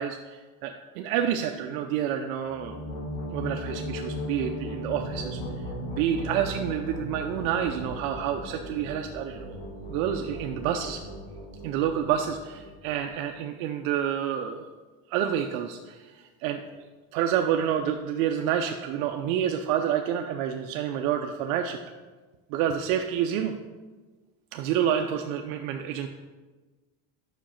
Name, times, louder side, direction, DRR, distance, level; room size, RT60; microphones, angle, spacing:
voice 1, 0.0-2.8 3.3-5.4 5.9-9.6 9.9-11.0 11.6-14.7 15.1-16.2 16.4-16.8 17.1-21.8 22.5-23.5 24.5-26.1, right 9 dB, 90° right, 5 dB, 0.6 m, -28 dB
sound 1, 2.5-13.1, equal, 70° left, 1.7 m, -37 dB
5.7 x 5.1 x 5.7 m, 1.3 s
cardioid pair, 165°, 40 cm